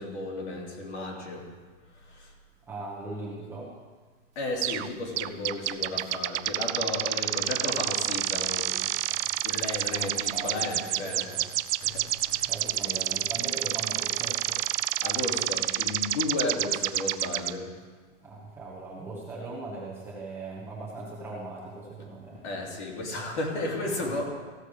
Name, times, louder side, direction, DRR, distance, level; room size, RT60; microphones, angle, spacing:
voice 1, 0.0-1.5 2.0-2.3 4.3-13.3 15.0-17.8 22.4-24.3, left 2 dB, 65° left, -1 dB, 3.0 m, -34 dB
voice 2, 2.7-3.7 9.9-11.4 12.5-14.6 18.2-22.5 23.9-24.3, right 2 dB, 5° right, -7 dB, 1.3 m, -39 dB
sound 1, 4.6-4.9 5.2-17.5, right 14 dB, 65° right, 0.5 m, -29 dB
15.0 x 6.5 x 4.9 m, 1.4 s
supercardioid pair, 170°, 37 cm